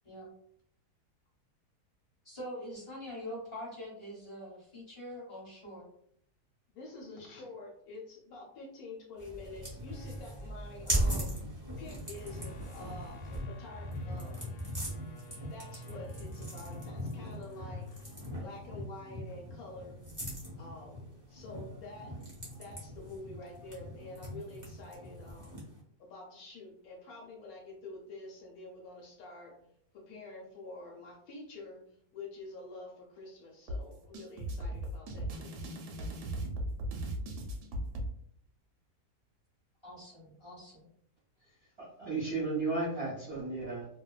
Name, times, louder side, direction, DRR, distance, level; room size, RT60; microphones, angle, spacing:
voice 1, 2.2-5.9 39.8-40.9, equal, 20° left, -5 dB, 0.9 m, -44 dB
voice 2, 6.7-11.3 11.8-14.4 15.5-20.0 20.6-22.2 22.5-25.6 26.0-29.5 29.9-31.8 32.1-35.5, left 2 dB, 70° left, -1 dB, 1.0 m, -48 dB
sound 1, 9.2-25.8, equal, 25° right, 0.4 m, -39 dB
sound 2, 9.7-18.2, left 2 dB, 90° left, 1.2 m, -51 dB
sound 3, 33.7-38.1, right 1 dB, 85° right, 1.2 m, -37 dB
voice 3, 41.8-43.9, right 3 dB, 50° right, -6 dB, 0.8 m, -34 dB
2.7 x 2.1 x 2.3 m, 0.68 s
omnidirectional pair, 1.7 m